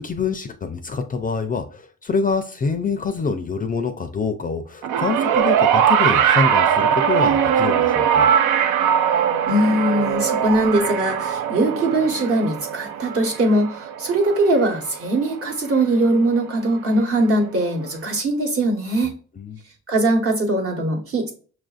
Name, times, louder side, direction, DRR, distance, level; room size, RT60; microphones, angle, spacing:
voice 1, 0.0-8.3 19.0-19.6, left 5 dB, 30° left, 0.4 m, -26 dB
sound 1, 4.8-15.3 16.3-16.4, right 8 dB, 85° right, 0.5 m, -20 dB
voice 2, 9.5-19.1 19.9-21.3, right 1 dB, 50° right, 1.2 m, -21 dB
6.0 x 2.5 x 2.4 m
cardioid pair, 90°, 30 cm